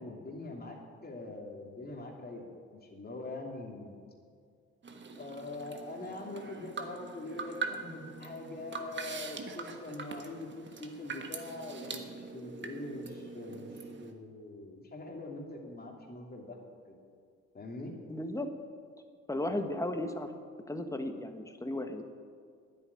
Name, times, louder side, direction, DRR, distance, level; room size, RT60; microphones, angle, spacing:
voice 1, 0.0-3.9 5.1-17.0 17.5-17.9, left 2 dB, 30° left, 0 dB, 2.8 m, -43 dB
sound 1, 4.8-14.1, right 4 dB, 40° right, 1.4 m, -43 dB
voice 2, 18.1-18.5 19.3-20.3 20.7-22.0, left 1 dB, 10° left, 6 dB, 1.3 m, -35 dB
10.5 x 8.4 x 9.6 m, 2.1 s
cardioid pair, 90°, 30 cm